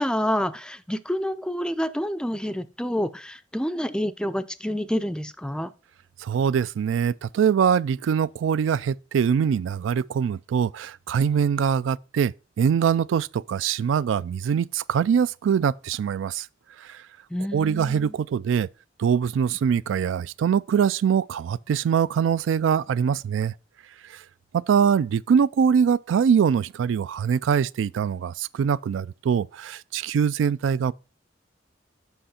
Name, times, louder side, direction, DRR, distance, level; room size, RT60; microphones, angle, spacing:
voice 1, 0.0-5.7 17.3-18.2, equal, 5° left, 0.4 m, -28 dB
voice 2, 6.2-16.5 16.8-17.0 17.5-18.7 19.0-23.5 24.1-24.2 24.5-30.9, right 7 dB, 85° right, 0.3 m, -23 dB
7.8 x 5.8 x 4.2 m
head